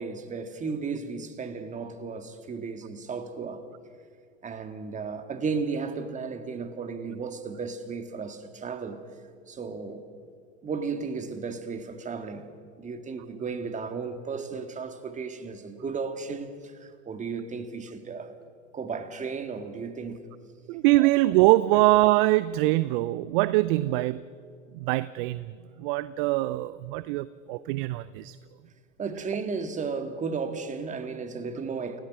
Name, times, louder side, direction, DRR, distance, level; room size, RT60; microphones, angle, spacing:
voice 1, 0.0-3.7 4.4-9.0 9.5-10.0 10.6-12.5 12.8-18.4 18.7-20.2 21.0-21.1 21.7-21.8 29.0-32.0, right 5 dB, 20° right, 1.9 m, -34 dB
voice 2, 20.7-24.2 24.8-25.5 25.8-28.4, right 18 dB, 45° right, 0.6 m, -23 dB
29.0 x 17.0 x 6.3 m
hypercardioid pair, 105°, 38 cm